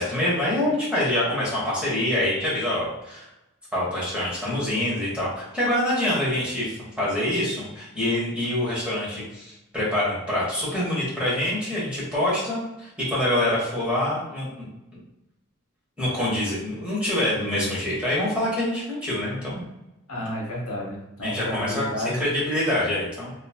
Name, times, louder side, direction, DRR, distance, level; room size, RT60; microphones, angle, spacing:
voice 1, 0.0-3.2 3.7-14.7 16.0-19.6 21.2-21.9 22.1-23.3, left 1 dB, 5° right, -8 dB, 1.0 m, -25 dB
voice 2, 20.1-22.2, left 1 dB, 85° left, -3 dB, 0.9 m, -31 dB
2.6 x 2.3 x 2.7 m, 0.93 s
head